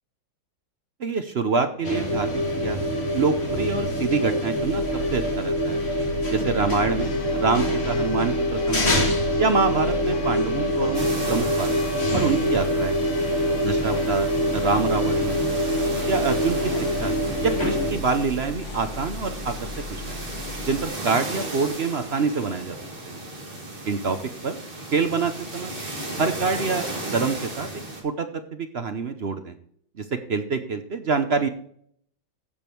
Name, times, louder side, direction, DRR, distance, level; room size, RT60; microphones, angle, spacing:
voice 1, 1.0-4.8 5.1-5.8 6.3-8.9 9.4-11.7 12.1-13.0 13.6-14.3 14.5-15.4 16.1-16.7 17.0-17.1 17.4-20.2 20.7-22.8 23.1-23.2 23.9-24.2 24.4-24.6 24.9-25.7 26.2-26.9 27.1-27.7 28.0-29.5 30.0-31.5, right 4 dB, 55° right, 8 dB, 0.7 m, -26 dB
sound 1, 1.8-17.9, equal, 35° left, 2.3 m, -25 dB
Church bell, 4.6-20.9, left 4 dB, 80° left, 2.1 m, -37 dB
sound 2, 10.9-28.0, right 1 dB, 30° right, 2.2 m, -35 dB
15.5 x 5.2 x 4.4 m, 0.63 s
omnidirectional pair, 2.0 m